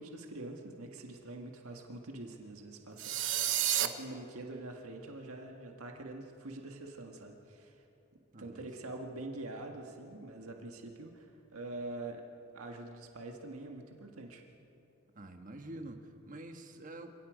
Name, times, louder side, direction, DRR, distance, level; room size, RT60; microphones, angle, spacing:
voice 1, 0.0-7.8 8.4-11.3 11.5-12.2 12.5-14.4, right 2 dB, 85° right, 2 dB, 1.7 m, -45 dB
sound 1, 3.0-3.9, right 12 dB, 60° right, 0.9 m, -30 dB
voice 2, 8.3-8.6 15.1-17.1, right 1 dB, 35° right, 5 dB, 1.4 m, -47 dB
29.0 x 17.5 x 5.1 m, 2.8 s
head